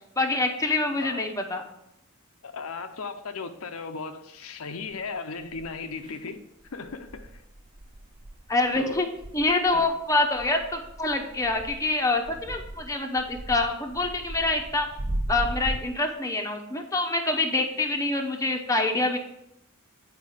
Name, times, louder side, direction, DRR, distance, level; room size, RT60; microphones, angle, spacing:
voice 1, 0.2-1.6 8.5-9.1 9.3-14.9 15.3-19.2, left 2 dB, 15° left, 0.8 m, -26 dB
voice 2, 2.4-6.4 6.7-7.4 8.7-9.0 9.7-9.8, left 4 dB, 75° left, 0.6 m, -36 dB
sound 1, 4.9-5.0 5.5-6.2 6.6-15.9, right 1 dB, 20° right, 0.4 m, -37 dB
8.5 x 4.8 x 4.9 m
head